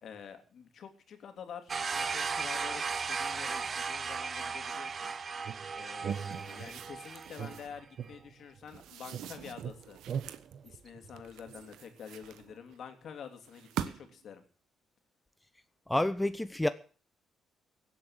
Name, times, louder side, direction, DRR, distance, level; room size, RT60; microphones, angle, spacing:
voice 1, 0.0-5.1 5.7-10.0 10.6-14.4, left 7 dB, 60° left, 3.0 m, -48 dB
sound 1, 1.7-7.6, right 5 dB, 40° right, 0.9 m, -36 dB
sound 2, 5.5-6.9 7.4-8.8 9.1-11.7, right 8 dB, 60° right, 1.2 m, -41 dB
sound 3, 6.1-7.8 8.7-10.5 11.2-12.8 13.4-14.2, right 10 dB, 85° right, 1.2 m, -44 dB
voice 2, 15.9-16.7, left 1 dB, 10° left, 0.8 m, -28 dB
16.0 x 8.5 x 7.4 m
cardioid pair, 90°, 0 cm